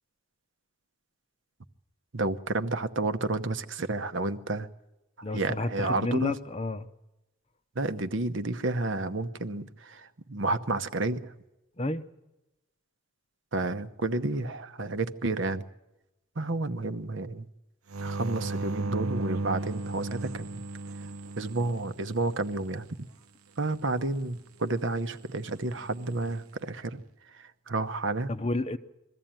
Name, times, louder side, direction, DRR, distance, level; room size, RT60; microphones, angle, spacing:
voice 1, 2.1-4.7 5.2-6.4 7.7-11.3 13.5-15.6 16.4-17.5 18.0-20.6 21.0-21.1 21.4-23.1 23.6-27.0 27.3-28.3, right 2 dB, 60° right, 1.0 m, -31 dB
voice 2, 5.2-6.9 11.8-12.0 28.3-28.8, left 2 dB, 30° left, 0.7 m, -30 dB
sound 1, 17.9-22.5 25.8-26.3, right 2 dB, 90° right, 0.8 m, -35 dB
22.0 x 14.5 x 9.0 m
head